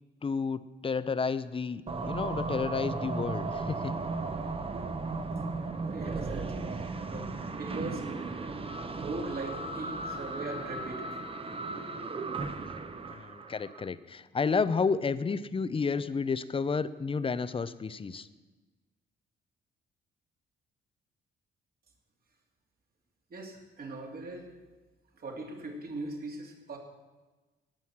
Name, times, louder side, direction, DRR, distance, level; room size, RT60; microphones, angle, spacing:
voice 1, 0.2-4.0 13.0-18.3, left 5 dB, 25° left, 15 dB, 0.6 m, -31 dB
sound 1, 1.9-13.9, right 3 dB, 30° right, 1.0 m, -36 dB
voice 2, 5.9-8.5 9.0-11.1 23.3-24.5 25.2-26.8, right 2 dB, 50° right, 2 dB, 2.7 m, -40 dB
18.0 x 6.2 x 7.4 m, 1.3 s
cardioid pair, 90°, 20 cm